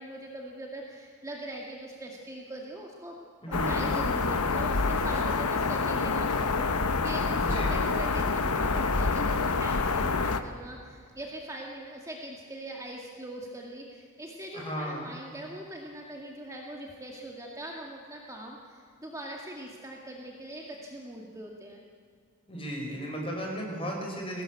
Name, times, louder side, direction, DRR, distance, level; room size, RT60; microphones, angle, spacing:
voice 1, 0.0-3.2 3.5-21.8, right 1 dB, 15° right, -1 dB, 2.0 m, -42 dB
voice 2, 3.4-3.9 7.4-7.8 14.5-15.1 22.5-24.4, equal, 25° left, 0 dB, 5.3 m, -35 dB
sound 1, 3.5-10.4, left 4 dB, 80° left, 1.1 m, -27 dB
20.5 x 17.5 x 8.3 m, 2.1 s
head